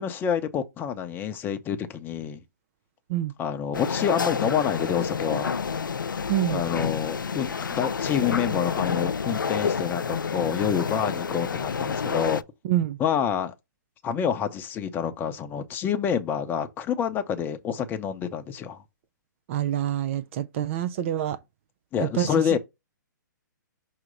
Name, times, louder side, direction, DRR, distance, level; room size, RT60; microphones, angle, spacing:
voice 1, 0.0-2.4 3.4-5.5 6.5-12.4 13.0-13.5 14.0-18.8 21.9-22.6, left 8 dB, 20° left, 0.8 m, -27 dB
sound 1, 3.7-12.4, left 6 dB, 85° left, 0.4 m, -29 dB
voice 2, 6.3-6.6 12.6-13.0 19.5-21.4 22.0-22.6, right 12 dB, 40° right, 0.5 m, -26 dB
6.1 x 2.9 x 5.4 m
figure-of-eight pair, 125°, 10 cm